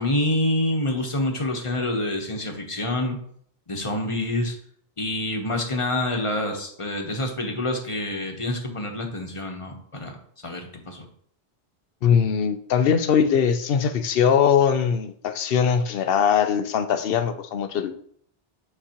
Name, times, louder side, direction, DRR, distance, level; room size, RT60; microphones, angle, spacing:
voice 1, 0.0-3.2 3.7-4.6 5.0-10.2 10.4-11.1, left 1 dB, 30° left, 3 dB, 1.0 m, -27 dB
voice 2, 12.0-17.9, left 7 dB, 70° left, 9 dB, 0.8 m, -21 dB
8.9 x 4.1 x 2.9 m, 0.63 s
omnidirectional pair, 1.0 m